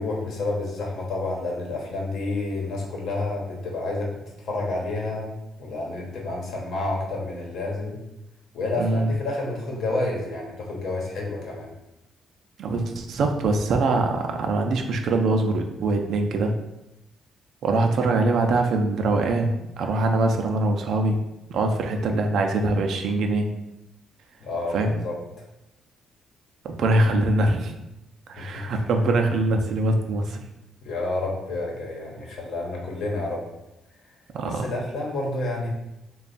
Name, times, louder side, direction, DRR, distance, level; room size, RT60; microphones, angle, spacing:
voice 1, 0.0-5.3 5.6-7.9 8.5-11.7 24.4-25.1 28.4-28.8 30.8-33.5 34.5-35.7, left 2 dB, 70° left, -1 dB, 1.0 m, -29 dB
voice 2, 8.8-9.1 12.6-16.5 17.6-21.2 21.5-23.5 24.7-25.0 26.6-27.7 28.3-30.4 34.3-34.7, right 2 dB, 70° right, 4 dB, 0.5 m, -23 dB
3.3 x 2.3 x 4.0 m, 0.92 s
cardioid pair, 90°, 0 cm